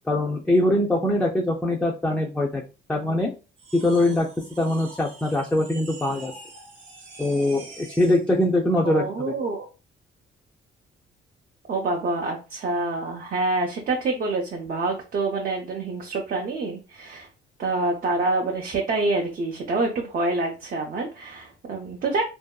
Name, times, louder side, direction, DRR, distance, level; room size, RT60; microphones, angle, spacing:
voice 1, 0.1-2.6 2.9-3.3 3.7-4.3 4.6-6.3 7.2-9.3, left 1 dB, 5° left, -1 dB, 0.4 m, -22 dB
sound 1, 3.6-8.3, right 3 dB, 75° right, 0.9 m, -45 dB
voice 2, 8.8-9.7 11.7-17.3 17.6-22.2, right 3 dB, 45° right, 0 dB, 0.6 m, -26 dB
2.6 x 2.2 x 2.2 m, 0.31 s
cardioid pair, 95°, 20 cm